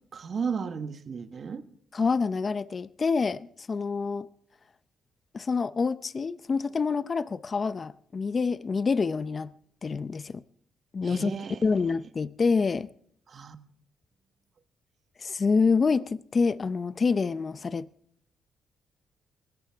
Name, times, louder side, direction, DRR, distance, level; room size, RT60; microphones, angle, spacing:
voice 1, 0.1-1.6 11.0-11.6 13.3-13.6, right 6 dB, 50° right, 1.4 m, -34 dB
voice 2, 1.9-4.3 5.3-9.5 9.8-10.4 10.9-11.3 11.6-12.9 15.2-17.9, left 4 dB, 40° left, 0.6 m, -27 dB
20.5 x 16.0 x 3.5 m
cardioid pair, 75°, 0 cm